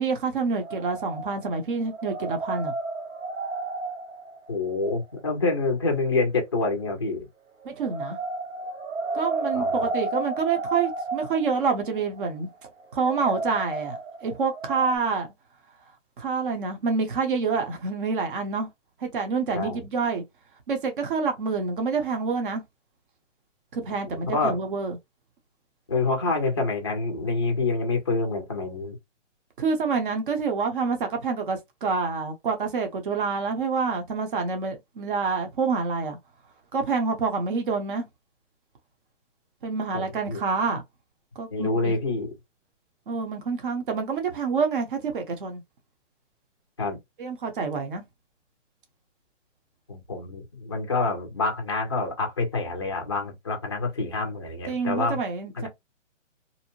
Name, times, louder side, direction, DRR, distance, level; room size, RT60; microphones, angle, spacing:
voice 1, 0.0-2.7 7.6-8.2 9.1-12.5 12.9-15.3 16.2-18.7 19.0-20.2 20.7-22.6 23.7-25.0 29.6-36.2 36.7-38.0 39.6-40.8 41.4-41.9 43.1-45.6 47.2-48.0 54.7-55.7, right 5 dB, 45° right, 0.8 m, -27 dB
sound 1, 0.6-1.6 1.9-5.0 7.7-15.0, right 3 dB, 80° right, 1.1 m, -32 dB
voice 2, 4.5-7.3 9.5-9.9 19.5-19.8 24.1-24.6 25.9-29.0 39.9-40.4 41.5-42.3 46.8-47.0 49.9-55.2 55.5-55.7, left 3 dB, 25° left, 0.4 m, -27 dB
2.7 x 2.0 x 2.8 m
hypercardioid pair, 160°, 37 cm